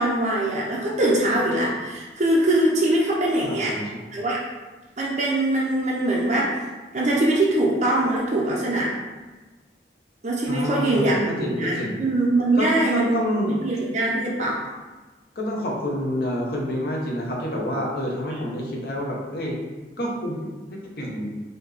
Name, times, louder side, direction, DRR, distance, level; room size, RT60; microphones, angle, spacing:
voice 1, 0.0-3.8 4.1-4.4 5.0-6.5 6.9-8.9 10.2-14.6, right 1 dB, 40° right, -4 dB, 0.6 m, -22 dB
voice 2, 3.4-4.1 10.5-12.0 12.6-13.6 15.4-19.6 20.0-20.3 21.0-21.2, equal, 60° left, -2 dB, 0.9 m, -28 dB
4.3 x 2.8 x 3.3 m, 1.2 s
head